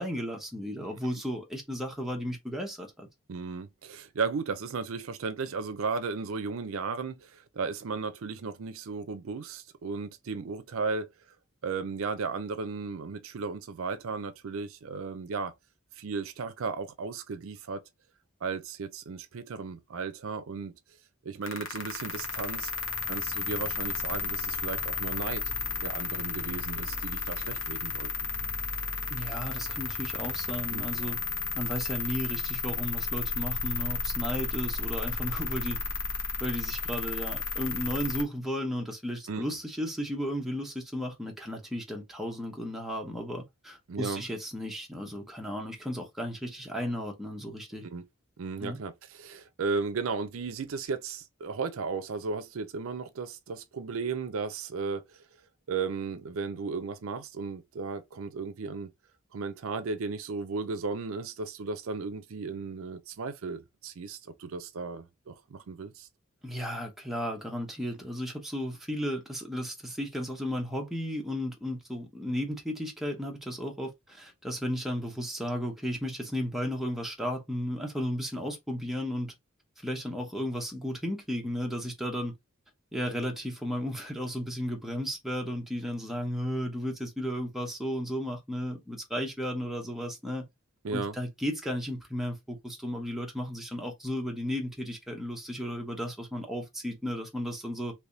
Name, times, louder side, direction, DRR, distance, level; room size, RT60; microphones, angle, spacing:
voice 1, 0.0-3.1 29.1-31.2 31.6-35.8 36.4-47.9 48.6-48.8 66.4-79.3 79.8-82.3 82.9-90.5 90.9-97.9, equal, ahead, 0.8 m, -34 dB
voice 2, 3.3-11.1 11.6-15.5 16.0-17.8 18.4-20.7 21.2-22.7 23.1-25.4 25.8-28.5 30.7-30.8 39.3-39.4 43.9-44.2 47.8-48.0 48.4-55.0 55.7-58.9 59.3-66.1 90.8-91.1, right 4 dB, 75° right, 0.5 m, -35 dB
sound 1, 21.4-38.2, left 4 dB, 70° left, 1.0 m, -33 dB
3.4 x 3.0 x 2.6 m
head